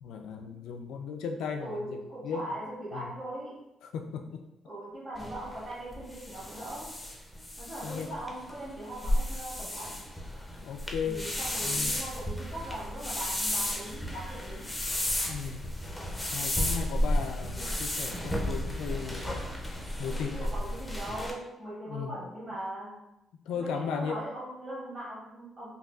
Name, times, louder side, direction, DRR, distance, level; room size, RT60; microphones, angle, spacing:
voice 1, 0.0-2.5 2.9-3.1 3.9-4.4 7.8-8.1 10.6-11.2 11.6-12.0 15.2-15.6 16.3-19.5 20.0-20.5 21.9-22.1 23.5-24.2, left 6 dB, 90° left, 4 dB, 0.3 m, -36 dB
voice 2, 1.6-3.6 4.6-6.9 7.6-10.1 11.0-14.8 20.3-23.1 23.5-25.8, right 1 dB, 30° right, -10 dB, 1.4 m, -40 dB
sound 1, 5.2-21.3, left 1 dB, 10° left, 0.5 m, -33 dB
3.8 x 2.3 x 2.3 m, 0.87 s
cardioid pair, 90°, 0 cm